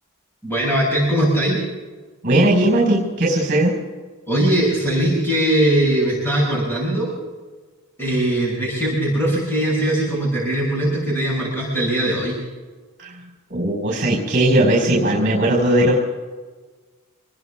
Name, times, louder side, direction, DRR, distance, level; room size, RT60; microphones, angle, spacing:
voice 1, 0.4-1.6 4.3-7.1 8.0-12.4, right 1 dB, 10° left, -5 dB, 6.9 m, -20 dB
voice 2, 2.2-3.7 13.0-13.2 13.5-16.0, right 1 dB, 35° right, -1 dB, 4.8 m, -18 dB
27.5 x 21.0 x 2.4 m, 1.4 s
head